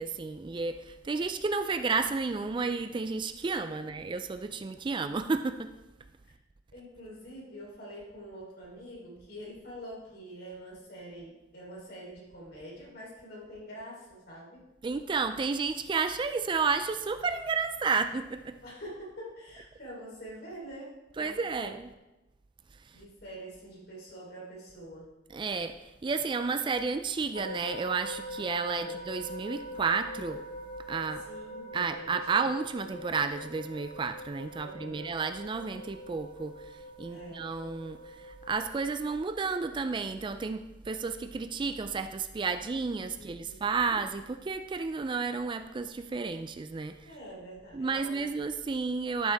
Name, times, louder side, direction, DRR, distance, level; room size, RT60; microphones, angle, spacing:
voice 1, 0.0-5.7 14.8-18.6 21.2-21.9 25.3-30.4 30.9-31.2 31.7-47.1 47.7-49.3, right 4 dB, 25° right, 9 dB, 0.3 m, -32 dB
voice 2, 6.7-14.7 18.6-21.7 22.9-25.1 28.7-29.0 31.3-32.5 34.6-35.2 37.1-37.5 43.1-44.0 47.0-48.3, right 1 dB, 60° left, -4 dB, 3.6 m, -46 dB
sound 1, 27.3-38.5, equal, 85° left, 1.5 m, -43 dB
12.0 x 6.6 x 3.5 m, 1.0 s
head